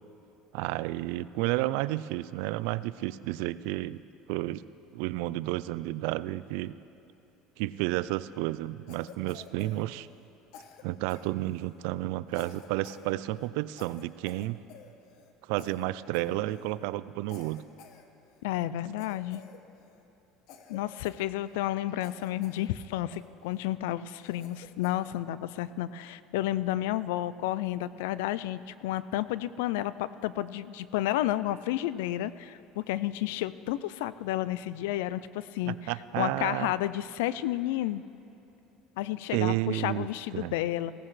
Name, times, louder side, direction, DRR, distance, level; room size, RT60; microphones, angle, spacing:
voice 1, 0.5-4.0 4.3-4.6 4.9-6.8 7.6-10.1 10.8-14.6 15.5-17.7 35.7-36.7 39.3-40.1 40.3-40.5, right 17 dB, 80° right, 17 dB, 0.3 m, -31 dB
Cough, 8.9-10.3 10.5-11.8 12.3-13.1 13.3-13.5 13.8-15.3 15.6-16.8 17.3-18.5 19.0-20.0 20.5-21.7 22.0-22.7 23.1-23.7 24.2-25.1, left 7 dB, 70° left, 1.0 m, -52 dB
voice 2, 18.4-19.4 20.7-38.0 39.0-40.9, left 14 dB, 90° left, 16 dB, 0.3 m, -31 dB
17.5 x 14.5 x 3.2 m, 2.8 s
supercardioid pair, 120°, 0 cm